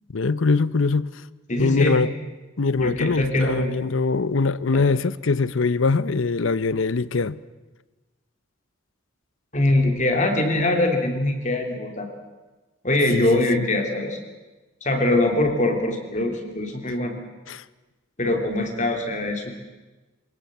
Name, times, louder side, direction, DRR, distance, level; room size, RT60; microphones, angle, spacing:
voice 1, 0.1-1.1 1.6-2.1 2.6-7.4 13.1-13.4 17.5-17.6, left 4 dB, 80° left, 0.8 m, -22 dB
voice 2, 1.5-2.0 2.7-3.7 9.5-12.1 12.8-14.2 14.8-17.1 18.2-19.6, left 1 dB, 35° left, 3.2 m, -22 dB
26.0 x 19.0 x 8.0 m
head